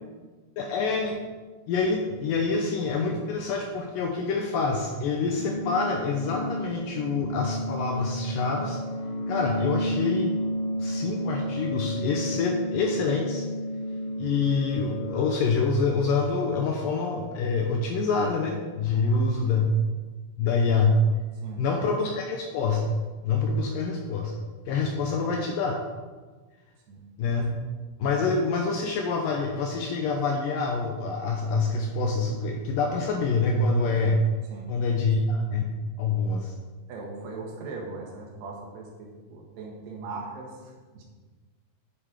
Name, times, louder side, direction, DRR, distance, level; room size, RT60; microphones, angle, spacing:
voice 1, 0.6-1.2 1.7-8.8 9.3-10.4 10.8-13.5 14.2-19.7 20.4-21.0 21.6-24.3 24.7-25.8 27.2-27.6 28.0-34.2 34.7-35.6 36.0-36.5, left 4 dB, 75° left, 2 dB, 2.1 m, -26 dB
sound 1, 5.4-15.4, equal, 45° left, 2.5 m, -32 dB
voice 2, 36.9-41.0, right 3 dB, 80° right, 0 dB, 3.5 m, -40 dB
8.8 x 7.3 x 4.9 m, 1.3 s
omnidirectional pair, 4.7 m